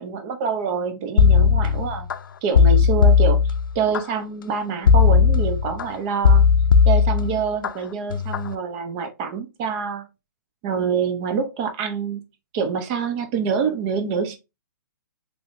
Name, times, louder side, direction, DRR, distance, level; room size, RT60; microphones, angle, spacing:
voice 1, 0.0-2.1 2.4-6.5 6.9-10.0 10.6-12.2 12.5-14.4, right 6 dB, 30° right, 0.7 m, -26 dB
sound 1, 1.2-2.1 2.5-4.0 4.9-5.8 6.2-7.7 8.1-8.5, left 6 dB, 85° left, 0.4 m, -16 dB
3.5 x 3.1 x 2.6 m
hypercardioid pair, 150°, 11 cm